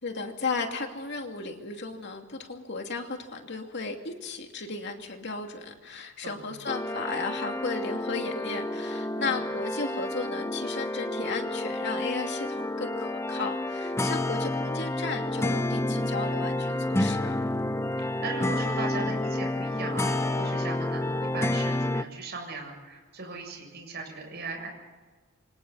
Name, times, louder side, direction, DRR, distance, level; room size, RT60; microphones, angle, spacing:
voice 1, 0.0-17.4, left 4 dB, 55° left, 3 dB, 2.7 m, -35 dB
sound 1, 6.7-22.0, left 1 dB, 10° left, 0.7 m, -29 dB
voice 2, 18.0-24.7, right 3 dB, 50° right, 1 dB, 7.6 m, -38 dB
28.0 x 25.5 x 4.2 m, 1.4 s
head